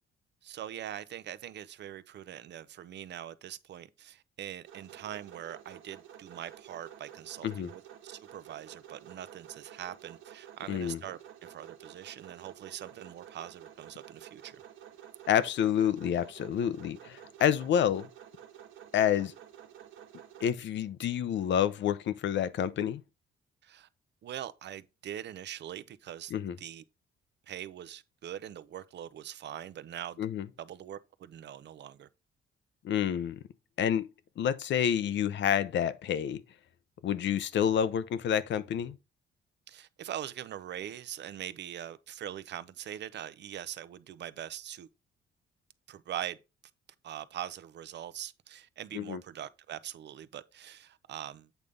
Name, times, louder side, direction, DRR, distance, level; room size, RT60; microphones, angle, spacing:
voice 1, 0.4-14.6 23.6-23.9 24.2-26.8 27.5-30.2 30.6-32.1 39.7-44.9 45.9-46.4 47.0-51.5, right 11 dB, 60° right, 0.6 m, -42 dB
sound 1, 4.6-20.5, right 10 dB, 85° right, 1.3 m, -51 dB
voice 2, 10.7-11.0 15.3-18.1 18.9-19.3 20.4-23.0 26.3-26.6 30.2-30.5 32.8-33.4 33.8-34.1 34.4-36.4 37.0-38.9 48.9-49.2, left 9 dB, 65° left, 0.7 m, -28 dB
8.2 x 3.5 x 5.2 m
cardioid pair, 90°, 20 cm